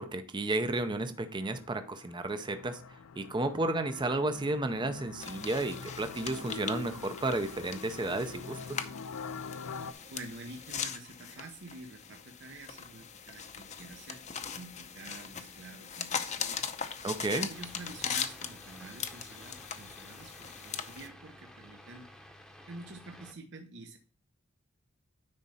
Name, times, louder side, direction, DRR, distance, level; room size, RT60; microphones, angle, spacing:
voice 1, 0.0-2.8 3.2-8.9 17.0-17.5, right 2 dB, 20° right, 9 dB, 0.5 m, -32 dB
sound 1, 1.1-9.9, left 5 dB, 85° left, 0.5 m, -45 dB
sound 2, 5.2-21.1, left 7 dB, 35° left, 0.7 m, -40 dB
voice 2, 10.1-14.2 14.5-16.7 17.3-22.1 22.7-24.0, right 2 dB, 60° right, 4 dB, 0.8 m, -48 dB
sound 3, 17.5-23.3, equal, ahead, 0.9 m, -53 dB
9.9 x 4.2 x 4.1 m, 0.42 s
head